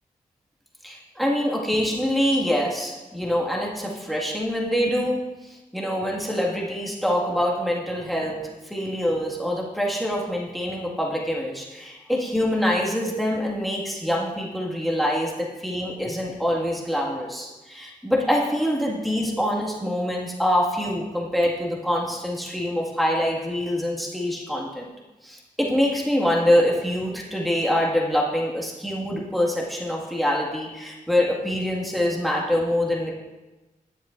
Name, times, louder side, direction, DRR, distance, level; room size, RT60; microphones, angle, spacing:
voice 1, 0.8-8.4 8.6-24.9 25.2-33.1, equal, ahead, -3 dB, 1.9 m, -25 dB
13.0 x 7.1 x 2.6 m, 1.1 s
cardioid pair, 50°, 15 cm